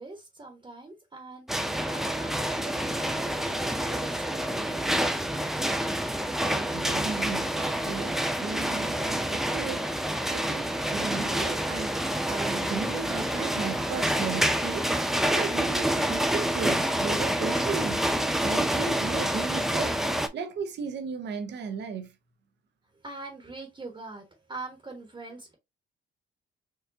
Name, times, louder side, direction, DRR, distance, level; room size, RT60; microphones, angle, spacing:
voice 1, 0.0-5.0 23.0-25.5, right 2 dB, 25° right, 1.2 m, -42 dB
sound 1, 1.5-20.3, right 1 dB, ahead, 0.4 m, -28 dB
voice 2, 6.4-18.1 18.4-22.1, right 5 dB, 60° right, 0.8 m, -36 dB
4.6 x 2.5 x 2.6 m
cardioid pair, 90°, 20 cm